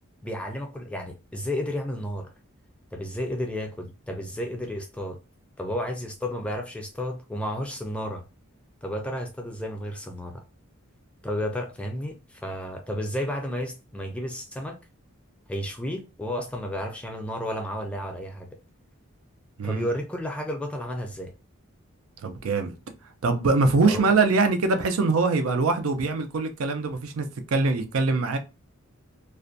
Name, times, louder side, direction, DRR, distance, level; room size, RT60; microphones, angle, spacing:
voice 1, 0.2-2.3 2.9-5.2 5.6-8.2 8.8-10.4 11.2-14.8 15.5-18.6 19.6-21.3 23.8-24.1, equal, 5° left, 0.3 m, -32 dB
voice 2, 22.2-22.7 23.2-28.4, right 3 dB, 75° right, 0.5 m, -23 dB
2.4 x 2.1 x 2.5 m
head